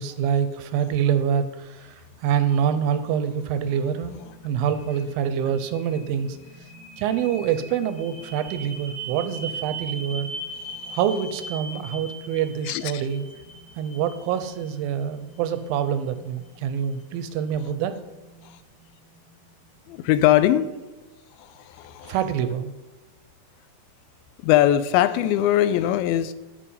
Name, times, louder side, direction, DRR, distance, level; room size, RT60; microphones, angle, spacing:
voice 1, 0.0-1.9 2.2-6.4 7.0-10.3 10.9-13.2 13.8-17.9 22.0-22.7, right 8 dB, 85° right, 11 dB, 2.4 m, -26 dB
sound 1, 2.1-20.2, right 2 dB, 35° left, 4.5 m, -41 dB
voice 2, 12.7-13.0 19.9-20.7 21.4-22.2 24.4-26.3, left 12 dB, 85° left, 13 dB, 2.4 m, -21 dB
11.0 x 5.5 x 5.5 m, 1.1 s
omnidirectional pair, 4.3 m